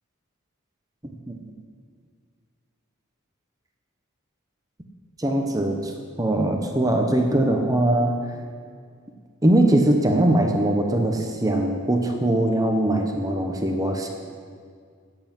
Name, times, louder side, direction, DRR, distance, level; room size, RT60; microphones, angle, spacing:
voice 1, 5.2-5.9 6.2-8.2 9.4-14.1, right 1 dB, 15° right, 3 dB, 0.9 m, -21 dB
12.0 x 8.0 x 9.3 m, 2.1 s
head